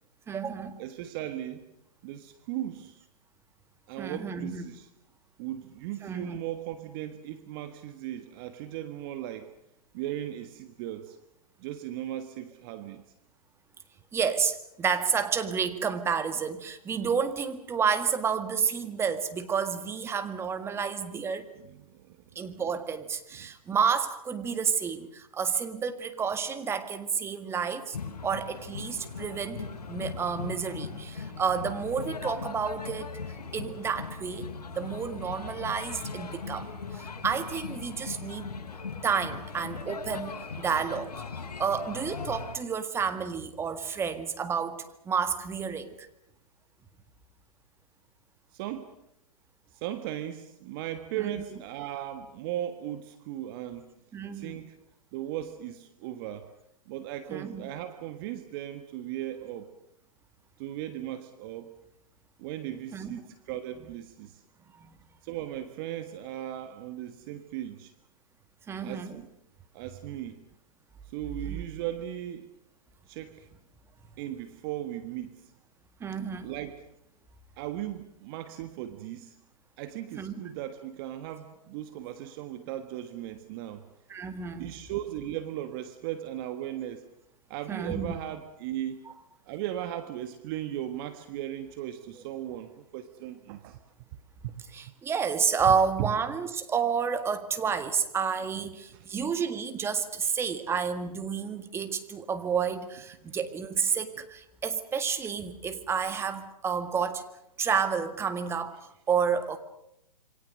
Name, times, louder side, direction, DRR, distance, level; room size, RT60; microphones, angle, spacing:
voice 1, 0.3-0.8 4.0-4.6 6.0-6.4 14.1-21.5 22.4-28.0 28.2-33.1 33.5-38.5 39.0-41.1 41.6-46.1 51.3-51.4 54.1-54.5 57.3-57.6 62.9-63.2 64.8-65.0 68.7-69.2 71.5-71.6 76.0-76.5 80.2-80.3 84.1-84.7 87.7-88.2 89.1-89.2 94.7-107.2 107.6-108.8 109.1-109.6, right 6 dB, 10° right, 9 dB, 1.8 m, -30 dB
voice 2, 0.8-1.7 2.0-3.0 3.9-4.9 5.4-9.5 9.9-11.2 11.6-13.0 21.6-22.2 22.4-22.5 23.4-23.5 48.5-48.9 49.7-53.9 54.3-54.8 55.1-56.5 56.9-59.7 60.6-61.7 62.4-64.4 65.2-67.9 68.8-69.3 69.7-70.4 71.1-72.5 73.1-73.5 74.2-75.5 76.4-76.9 77.6-79.4 79.8-83.9 84.6-87.0 87.5-89.0 89.5-94.1 94.4-94.7 95.7-96.1 98.6-98.7 98.9-99.1, right 12 dB, 35° right, 10 dB, 1.5 m, -37 dB
sound 1, 27.9-42.5, left 5 dB, 70° left, 5.3 m, -39 dB
27.5 x 24.0 x 6.5 m, 0.80 s
hypercardioid pair, 135°, 20 cm